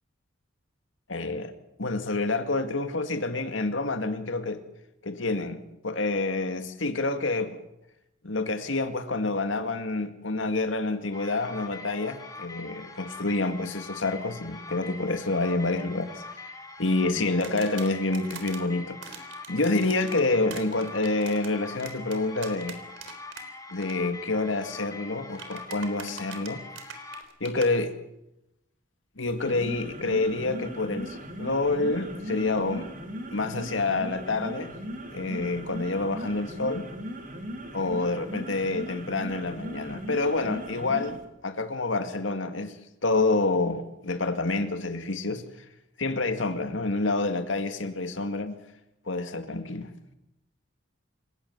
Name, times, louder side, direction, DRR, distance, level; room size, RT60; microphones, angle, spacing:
voice 1, 1.1-1.5 1.8-4.6 5.0-7.6 8.2-16.4 16.8-22.8 23.7-26.6 27.4-27.9 29.2-32.9 33.3-34.7 35.1-36.9 37.7-42.8 43.0-45.4 46.0-48.6 49.1-49.9, left 2 dB, 80° left, 2.1 m, -28 dB
sound 1, 11.1-27.2, left 3 dB, 20° left, 2.9 m, -43 dB
sound 2, 17.4-18.6 19.0-23.4 23.7-23.9 25.3-27.7, right 7 dB, 85° right, 3.9 m, -43 dB
sound 3, 29.3-41.2, equal, 45° right, 3.7 m, -38 dB
29.0 x 17.5 x 7.3 m
head